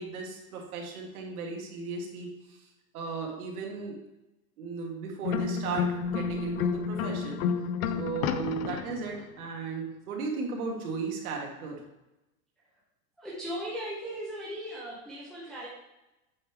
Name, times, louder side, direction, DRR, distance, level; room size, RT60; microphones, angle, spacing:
voice 1, 0.0-2.6 2.9-4.0 4.6-7.4 7.9-11.8, right 4 dB, 75° right, 0 dB, 2.0 m, -36 dB
sound 1, 5.2-9.2, left 6 dB, 70° left, 0.6 m, -30 dB
voice 2, 13.2-15.7, equal, ahead, -8 dB, 0.5 m, -37 dB
8.3 x 3.5 x 4.5 m, 0.97 s
supercardioid pair, 180°, 44 cm